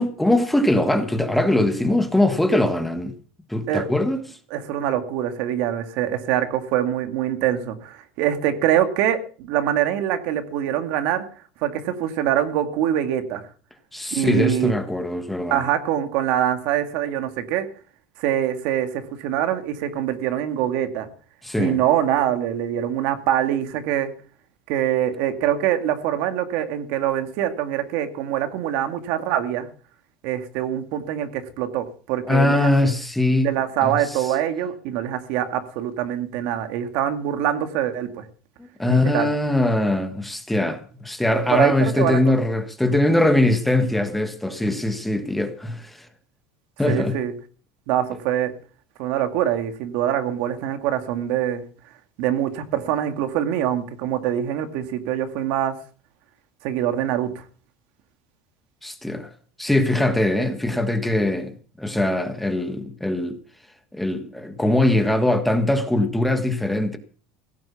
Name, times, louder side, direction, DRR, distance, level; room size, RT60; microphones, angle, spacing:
voice 1, 0.0-3.1 3.5-4.2 13.9-15.6 21.4-21.8 32.3-33.5 33.8-34.0 38.6-46.1 46.8-47.2 58.8-59.3 59.6-61.5 61.8-63.4 63.9-67.0, left 1 dB, 5° left, 1.5 m, -21 dB
voice 2, 4.5-11.2 11.6-13.4 14.1-14.7 15.5-17.7 18.2-21.1 21.6-24.1 24.7-29.7 30.2-32.9 33.4-38.2 38.9-39.3 41.5-42.2 46.9-47.3 47.9-48.5 49.0-51.6 52.2-55.7 56.6-57.4, right 11 dB, 65° right, 2.1 m, -24 dB
16.5 x 7.9 x 7.1 m
cardioid pair, 140°, 3 cm